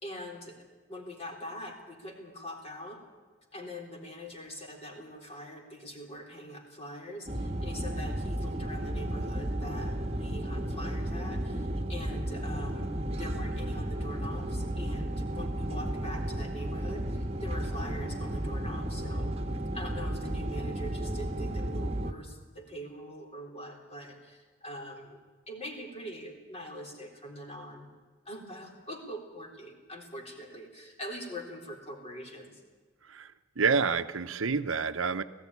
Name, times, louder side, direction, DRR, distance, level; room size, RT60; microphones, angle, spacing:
voice 1, 0.0-0.6 0.9-3.0 3.5-19.3 19.7-27.9 28.3-32.6, equal, 30° left, 2 dB, 3.8 m, -43 dB
sound 1, 7.3-22.1, right 1 dB, 30° right, 1.4 m, -33 dB
voice 2, 33.6-35.2, right 5 dB, 70° right, 11 dB, 0.8 m, -28 dB
18.5 x 15.0 x 9.8 m, 1.4 s
head